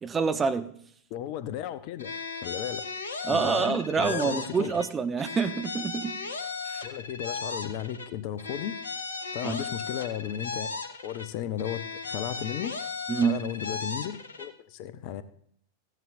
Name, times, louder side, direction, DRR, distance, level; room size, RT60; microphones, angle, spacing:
voice 1, 0.0-0.7 3.2-6.2 6.6-6.8 9.4-9.6 13.1-13.4, right 5 dB, 20° right, 0.8 m, -27 dB
voice 2, 1.1-2.1 2.4-2.9 3.3-4.8 6.8-8.8 9.3-12.7 13.2-15.2, left 10 dB, 45° left, 0.7 m, -35 dB
sound 1, 2.0-4.9 5.2-8.1 8.4-11.3 11.6-14.5, left 4 dB, 70° left, 0.9 m, -36 dB
15.5 x 11.0 x 2.6 m
figure-of-eight pair, 90°, 0 cm